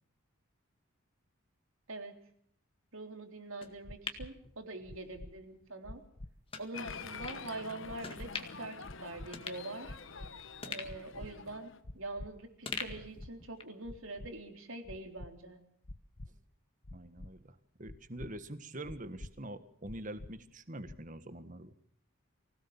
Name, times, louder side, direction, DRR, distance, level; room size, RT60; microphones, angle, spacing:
voice 1, 2.9-6.0 6.6-10.0 10.6-15.6, right 2 dB, 70° right, 5 dB, 3.5 m, -44 dB
Pool Table hit ball with Pool cue and ball roll hits balls, 3.6-5.2 5.6-5.7 6.5-6.7 7.3-7.4 8.0-8.7 9.0-9.1 9.3-10.2 10.6-12.2 12.6-13.8 14.1-14.2, left 4 dB, 25° left, 1.9 m, -44 dB
sound 1, 3.8-4.3 4.8-5.3 5.8-6.3 6.8-7.3 7.8-8.3 8.8-9.3 9.8-10.3 10.8-11.3 11.8-12.3 12.8-13.3 13.8-14.3 14.8-15.3 15.8-16.3 16.8-17.3 17.8-18.3 18.8-19.3 19.8-20.3 20.8-21.2, left 1 dB, 45° left, 1.0 m, -46 dB
Applause, 6.7-11.8, left 5 dB, 65° left, 1.2 m, -47 dB
voice 2, 16.9-21.8, right 1 dB, 35° right, 11 dB, 1.6 m, -45 dB
24.5 x 17.0 x 7.2 m, 0.65 s
head